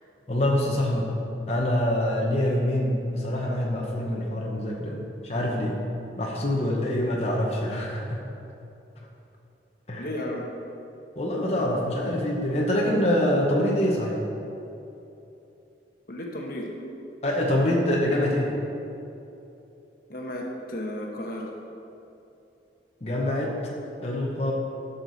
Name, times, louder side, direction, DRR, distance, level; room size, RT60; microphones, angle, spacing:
voice 1, 0.3-1.2 1.5-5.8 6.2-8.2 9.9-10.1 11.2-14.2 17.2-18.6 23.0-23.6 24.0-24.5, left 1 dB, 35° left, -3 dB, 1.0 m, -25 dB
voice 2, 10.0-10.4 16.1-16.7 20.1-21.5, left 1 dB, 55° left, 0 dB, 1.1 m, -33 dB
12.0 x 6.8 x 4.1 m, 2.9 s
head